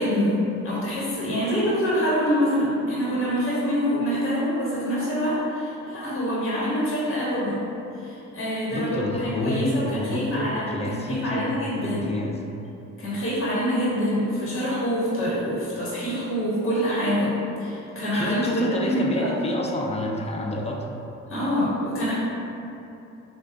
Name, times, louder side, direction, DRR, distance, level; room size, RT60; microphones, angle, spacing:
voice 1, 0.0-7.6 8.0-12.1 13.0-17.3 17.6-19.3 21.3-22.1, equal, 45° left, -8 dB, 1.2 m, -25 dB
voice 2, 8.7-11.5 11.8-12.4 18.1-20.9, left 1 dB, 20° left, 0 dB, 0.4 m, -29 dB
3.6 x 2.4 x 3.5 m, 2.8 s
cardioid pair, 90°, 30 cm